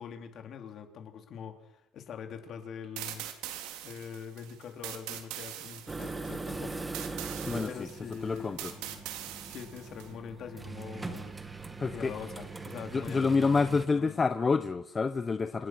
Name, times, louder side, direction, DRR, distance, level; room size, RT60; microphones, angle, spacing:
voice 1, 0.0-3.2 3.8-6.8 7.6-9.0 9.5-11.4 11.9-13.3 13.7-14.2, left 7 dB, 45° left, 5 dB, 3.9 m, -43 dB
sound 1, 3.0-10.1, right 12 dB, 80° right, 3.7 m, -42 dB
sound 2, 5.9-13.9, right 3 dB, 15° right, 1.9 m, -41 dB
voice 2, 8.2-8.7 11.8-12.1 12.9-15.7, left 4 dB, 20° left, 11 dB, 0.8 m, -28 dB
28.0 x 20.5 x 6.3 m, 0.79 s
cardioid pair, 145°, 0 cm